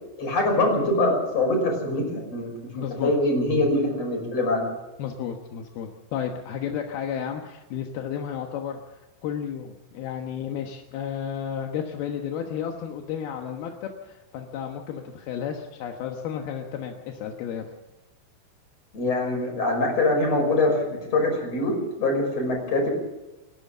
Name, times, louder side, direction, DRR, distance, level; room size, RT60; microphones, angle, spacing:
voice 1, 0.2-4.7 18.9-22.9, left 2 dB, 30° left, 3 dB, 6.5 m, -24 dB
voice 2, 2.7-3.1 5.0-8.8 9.2-17.7, left 8 dB, 70° left, 3 dB, 2.6 m, -32 dB
30.0 x 12.5 x 7.3 m, 1.0 s
omnidirectional pair, 5.8 m